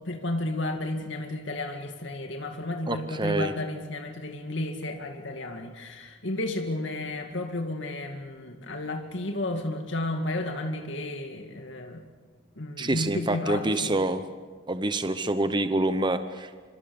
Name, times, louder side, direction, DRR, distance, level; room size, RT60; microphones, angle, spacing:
voice 1, 0.1-12.0 12.6-14.0, left 1 dB, 65° left, 4 dB, 2.2 m, -32 dB
voice 2, 2.9-3.5 12.8-14.2 14.7-16.7, right 2 dB, 25° right, 10 dB, 0.8 m, -27 dB
26.0 x 25.5 x 7.1 m, 1.5 s
head